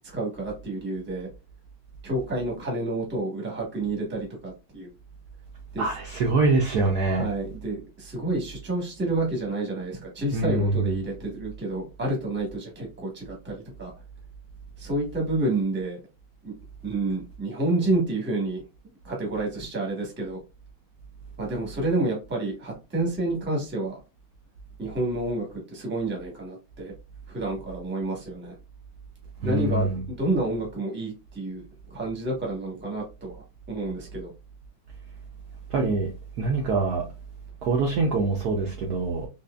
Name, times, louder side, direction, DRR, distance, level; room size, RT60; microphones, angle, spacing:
voice 1, 0.1-1.3 2.0-4.9 5.7-5.8 7.1-13.9 14.8-16.0 16.4-16.5 16.8-18.6 19.0-20.4 21.4-24.0 24.8-26.9 27.3-28.5 29.4-31.6 31.9-34.3, right 2 dB, 10° right, 0.8 m, -29 dB
voice 2, 5.8-7.2 10.3-10.9 29.4-30.0 35.7-36.1 36.4-37.0 37.6-39.3, right 3 dB, 65° right, 1.0 m, -24 dB
4.1 x 2.9 x 2.3 m
omnidirectional pair, 2.2 m